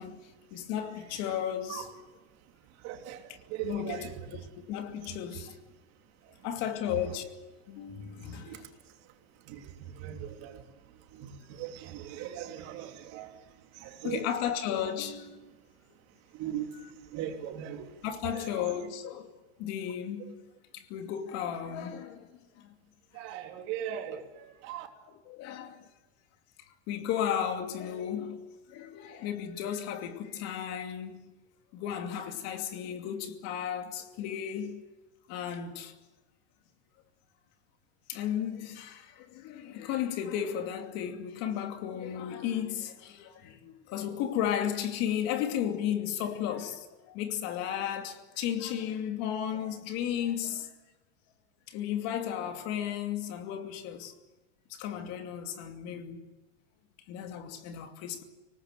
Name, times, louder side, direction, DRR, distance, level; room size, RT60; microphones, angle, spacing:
voice 1, 0.0-1.9 3.6-4.4 4.7-5.5 6.4-7.4 7.7-8.7 14.0-15.5 16.7-16.9 18.0-19.3 19.6-20.3 20.7-22.3 22.6-22.7 23.1-23.2 25.1-25.9 26.9-31.3 31.7-34.8 35.3-35.9 38.1-50.7 51.7-54.1 54.7-56.2 57.1-58.2, left 9 dB, 50° left, 2.7 m, -34 dB
voice 2, 2.8-3.2 3.5-4.0 8.4-8.6 9.5-9.6 9.9-10.6 11.2-13.4 13.8-14.2 16.4-16.7 17.1-17.8 23.1-24.9, right 10 dB, 50° right, 3.3 m, -38 dB
25.0 x 19.0 x 9.3 m
supercardioid pair, 140°, 34 cm